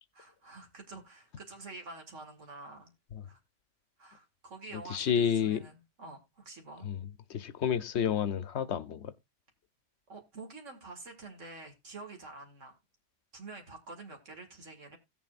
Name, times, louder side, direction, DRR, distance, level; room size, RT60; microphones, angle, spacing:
voice 1, 0.1-2.9 3.2-3.4 4.0-6.9 10.1-12.8 13.3-15.0, right 3 dB, 90° right, 2.3 m, -48 dB
voice 2, 4.7-5.6 6.8-9.1, left 8 dB, 70° left, 1.0 m, -30 dB
17.0 x 7.2 x 2.4 m
omnidirectional pair, 1.2 m